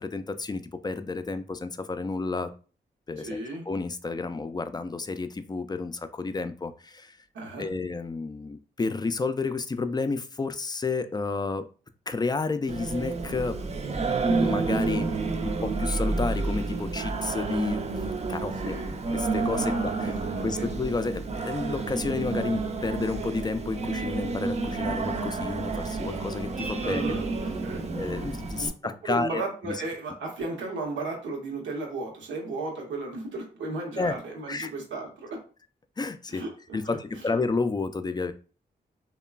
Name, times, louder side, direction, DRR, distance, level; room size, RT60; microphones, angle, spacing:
voice 1, 0.0-2.5 3.1-3.4 3.7-7.2 7.6-11.7 12.1-13.6 14.4-15.1 15.4-18.8 19.1-20.1 20.4-27.0 27.9-29.8 34.0-34.1 34.5-34.7 36.0-36.4 36.7-38.3, left 3 dB, 20° left, 11 dB, 0.3 m, -31 dB
voice 2, 3.2-3.7 7.3-7.7 18.6-18.9 19.6-19.7 20.0-20.7 26.8-27.3 27.6-27.9 28.5-28.7 29.0-35.4 36.3-36.5 36.8-37.2, right 2 dB, 80° right, 0 dB, 0.9 m, -35 dB
Singing, 12.7-28.7, right 3 dB, 35° right, 0.5 m, -30 dB
3.0 x 2.2 x 2.3 m, 0.38 s
supercardioid pair, 45°, 19 cm